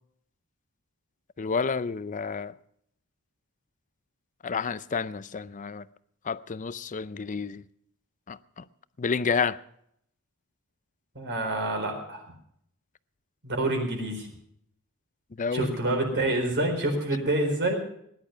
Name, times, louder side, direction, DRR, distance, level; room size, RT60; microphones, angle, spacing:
voice 1, 1.4-2.5 4.4-5.9 6.2-7.6 8.3-8.6 9.0-9.6 15.4-15.7, left 5 dB, 35° left, 0.5 m, -30 dB
voice 2, 11.1-12.2 13.4-14.3 15.5-17.8, right 1 dB, 55° right, 4.4 m, -27 dB
18.5 x 11.0 x 5.7 m
head